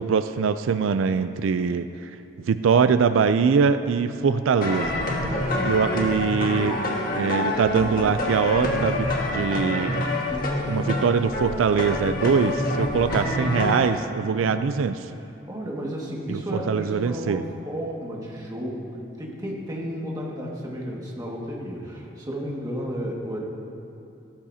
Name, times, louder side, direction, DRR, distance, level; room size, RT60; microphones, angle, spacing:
voice 1, 0.0-2.1 2.5-5.1 5.6-6.8 7.1-10.0 10.7-14.9 16.3-17.4, right 6 dB, 85° right, 11 dB, 0.4 m, -23 dB
sound 1, 4.6-13.9, left 1 dB, 45° left, 1.5 m, -26 dB
voice 2, 5.3-5.8 10.3-11.0 14.3-14.7 15.1-23.4, equal, 20° right, -3 dB, 1.8 m, -33 dB
16.5 x 13.5 x 2.8 m, 2.7 s
head